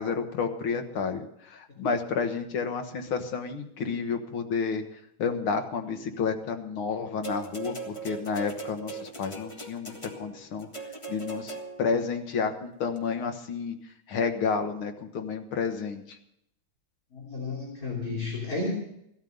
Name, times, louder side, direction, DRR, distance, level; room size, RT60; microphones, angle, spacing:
voice 1, 0.0-4.8 5.2-10.7 11.1-16.2, left 5 dB, 80° left, 5 dB, 2.3 m, -30 dB
sound 1, 7.2-12.0 13.0-13.1, right 4 dB, 15° left, 1.5 m, -39 dB
voice 2, 17.1-18.7, left 3 dB, 45° left, -3 dB, 3.8 m, -32 dB
16.0 x 13.0 x 5.4 m, 0.76 s
omnidirectional pair, 2.3 m